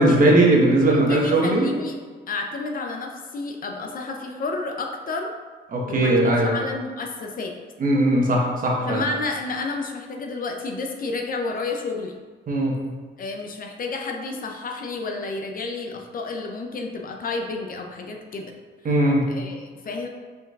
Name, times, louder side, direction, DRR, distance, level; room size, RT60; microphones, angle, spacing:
voice 1, 0.0-1.7 5.7-6.5 7.8-9.0 12.5-12.8 18.8-19.3, right 1 dB, 45° right, -1 dB, 1.0 m, -19 dB
voice 2, 0.8-2.0 2.3-5.3 5.9-7.5 8.8-12.2 13.2-18.5 18.8-19.0 19.3-20.1, left 3 dB, 45° left, 2 dB, 0.5 m, -31 dB
4.9 x 3.8 x 2.3 m, 1.4 s
cardioid pair, 90°, 20 cm